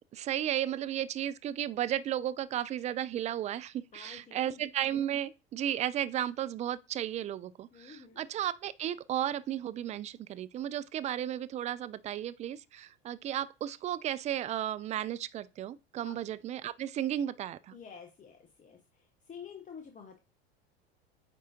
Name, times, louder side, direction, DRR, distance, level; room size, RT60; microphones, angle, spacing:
voice 1, 0.1-17.8, right 11 dB, 20° right, 0.3 m, -34 dB
voice 2, 3.9-4.6 7.7-8.2 16.0-16.1 17.7-20.2, left 6 dB, 25° left, 1.0 m, -49 dB
8.7 x 4.7 x 2.9 m
hypercardioid pair, 80°, 32 cm